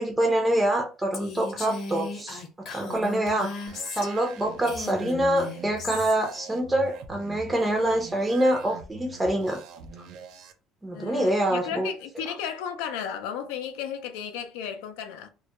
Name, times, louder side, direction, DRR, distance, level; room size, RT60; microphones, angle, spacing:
voice 1, 0.0-2.4 2.7-3.5 3.9-9.6 10.8-11.9, right 1 dB, 10° right, 0.5 m, -25 dB
Female speech woman speaking, 1.1-4.3 4.6-6.2, left 4 dB, 55° left, 0.8 m, -36 dB
sound 1, 3.7-10.5, right 5 dB, 70° right, 0.3 m, -44 dB
voice 2, 10.9-15.3, left 8 dB, 90° left, 0.4 m, -34 dB
2.2 x 2.1 x 2.8 m
cardioid pair, 120°, 0 cm